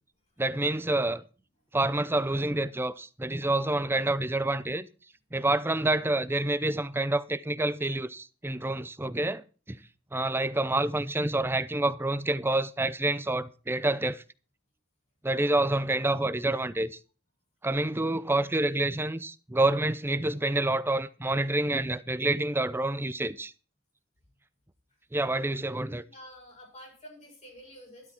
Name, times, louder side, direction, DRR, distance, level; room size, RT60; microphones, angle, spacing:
voice 1, 0.4-1.2 1.7-4.9 5.3-9.8 10.1-14.2 15.2-17.0 17.6-23.5 25.1-26.0, right 2 dB, 10° right, 0.6 m, -28 dB
voice 2, 26.0-28.1, equal, 35° left, 6.0 m, -49 dB
12.5 x 12.0 x 4.4 m
head